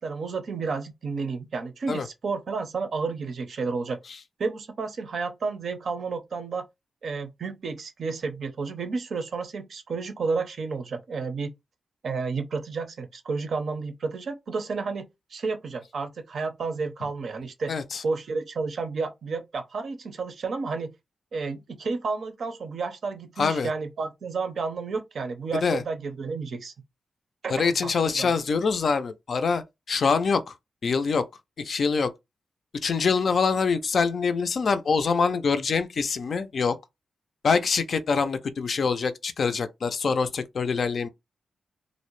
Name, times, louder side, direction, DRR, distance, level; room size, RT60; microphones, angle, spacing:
voice 1, 0.0-4.0 4.4-6.7 7.0-11.5 12.0-17.7 18.0-20.9 21.3-26.7 27.4-28.3, right 4 dB, 60° right, 0.5 m, -31 dB
voice 2, 17.7-18.0 23.4-23.7 25.6-25.8 27.5-30.5 30.8-31.2 31.6-32.1 32.8-36.8 37.4-41.1, left 5 dB, 55° left, 0.4 m, -25 dB
2.6 x 2.0 x 3.0 m
wide cardioid pair, 115°, 0 cm